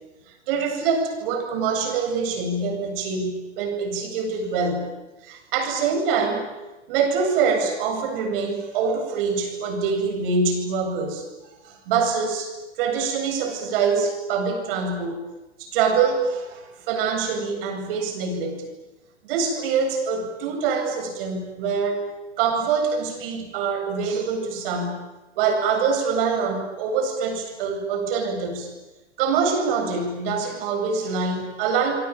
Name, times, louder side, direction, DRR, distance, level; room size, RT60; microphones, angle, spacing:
voice 1, 0.3-4.9 5.2-6.5 6.9-11.3 11.6-12.5 12.8-15.2 15.6-18.6 19.2-22.1 22.4-25.0 25.4-28.7 29.2-31.9, right 5 dB, 50° right, 5 dB, 8.0 m, -24 dB
28.5 x 22.5 x 9.0 m, 1.1 s
hypercardioid pair, 110°, 35 cm